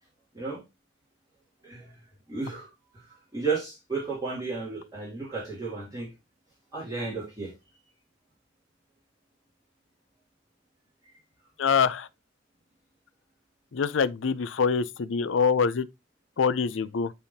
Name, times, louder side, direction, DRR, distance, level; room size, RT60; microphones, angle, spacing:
voice 1, 2.3-2.7 2.9-3.0 3.3-6.1 6.7-7.5, right 4 dB, 20° right, 2.5 m, -33 dB
voice 2, 11.6-12.1 13.7-15.9 16.4-17.1, left 6 dB, 85° left, 0.5 m, -25 dB
10.5 x 3.5 x 2.7 m
head